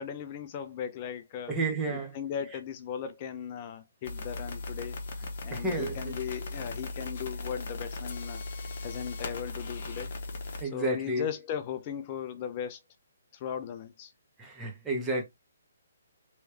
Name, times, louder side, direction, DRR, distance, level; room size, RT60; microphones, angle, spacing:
voice 1, 0.0-1.6 1.9-5.0 5.4-8.4 8.8-10.1 10.6-12.8 13.3-14.1, left 8 dB, 35° left, 0.5 m, -37 dB
voice 2, 1.5-2.1 5.5-6.1 10.6-11.3 14.4-15.2, right 2 dB, 10° right, 1.2 m, -31 dB
sound 1, 4.0-10.6, left 2 dB, 50° left, 1.1 m, -38 dB
3.2 x 3.1 x 3.1 m
figure-of-eight pair, 135°, 0 cm